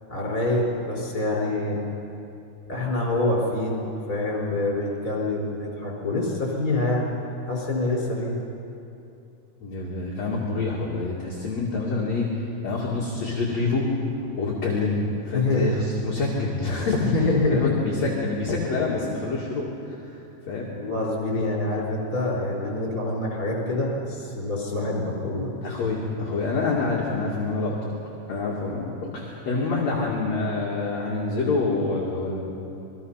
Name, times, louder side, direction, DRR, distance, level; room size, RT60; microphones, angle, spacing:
voice 1, 0.1-1.8 2.7-7.1 7.5-8.3 15.3-15.7 17.0-17.8 20.8-25.5, left 2 dB, 20° left, -2 dB, 5.4 m, -26 dB
voice 2, 9.6-12.3 12.6-13.9 14.4-17.1 17.5-19.7 20.5-20.7 25.6-27.9 28.3-32.4, left 3 dB, 45° left, -4 dB, 3.2 m, -26 dB
28.0 x 21.0 x 5.8 m, 2.8 s
omnidirectional pair, 4.7 m